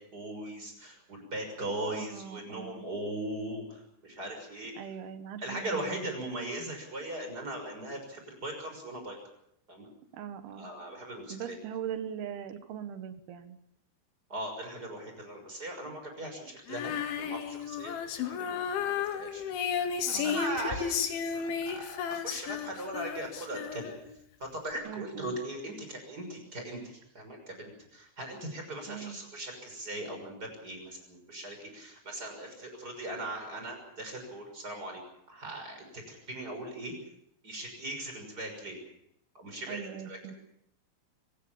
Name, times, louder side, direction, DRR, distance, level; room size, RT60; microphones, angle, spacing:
voice 1, 0.1-4.7 5.4-9.2 9.7-9.9 10.6-11.6 14.3-24.0 24.4-35.0 35.3-37.0 37.4-38.8 39.3-40.2, right 1 dB, 20° right, 4 dB, 6.4 m, -39 dB
voice 2, 1.9-2.8 4.8-6.1 10.1-10.7 11.3-13.6 20.1-20.4 24.8-25.3 28.9-29.2 39.7-40.3, right 8 dB, 65° right, 9 dB, 3.2 m, -41 dB
Female singing, 16.7-24.2, left 7 dB, 85° left, 4.1 m, -33 dB
25.0 x 18.0 x 7.3 m, 0.75 s
omnidirectional pair, 5.3 m